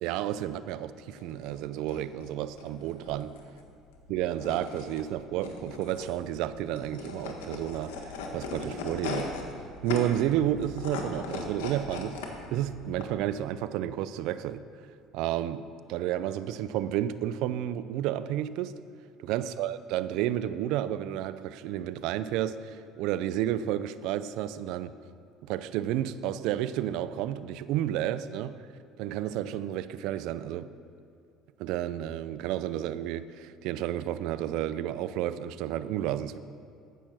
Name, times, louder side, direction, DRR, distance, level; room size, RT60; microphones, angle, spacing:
voice 1, 0.0-3.3 4.1-7.9 8.3-9.3 9.8-12.2 12.5-14.6 15.1-15.6 15.9-18.7 19.2-24.9 25.4-28.5 29.0-30.7 31.6-36.4, right 12 dB, 75° right, 14 dB, 0.5 m, -31 dB
sound 1, 1.1-13.0, left 3 dB, 85° left, 1.5 m, -39 dB
15.0 x 6.3 x 5.9 m, 2.5 s
supercardioid pair, 80°, 0 cm